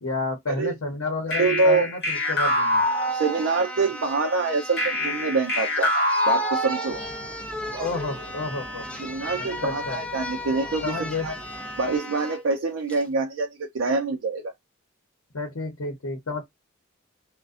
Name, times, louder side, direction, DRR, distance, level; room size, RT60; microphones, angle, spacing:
voice 1, 0.0-2.8 7.8-8.8 9.4-10.0 10.8-11.3 15.3-16.4, left 3 dB, 85° left, 0.8 m, -30 dB
sound 1, 1.3-3.8 4.8-7.3, left 1 dB, 55° left, 1.0 m, -25 dB
voice 2, 1.4-1.9 3.1-7.0 9.0-10.9 11.2-11.3 11.8-14.5, right 3 dB, 70° right, 0.4 m, -25 dB
sound 2, 1.6-1.7 2.0-12.4 12.9-13.1, left 1 dB, 5° left, 0.4 m, -36 dB
sound 3, 6.9-12.0, right 1 dB, 25° right, 1.2 m, -41 dB
2.5 x 2.1 x 2.3 m
head